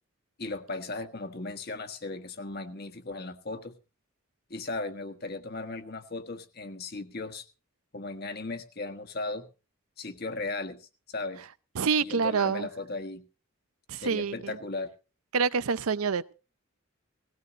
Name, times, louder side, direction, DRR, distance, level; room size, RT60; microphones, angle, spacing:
voice 1, 0.4-3.7 4.5-7.5 7.9-9.5 10.0-11.4 12.0-13.2 14.0-14.9, left 3 dB, 45° left, 1.4 m, -36 dB
voice 2, 11.8-12.7 13.9-14.6 15.3-16.3, right 5 dB, 85° right, 0.6 m, -27 dB
19.0 x 16.0 x 2.7 m
head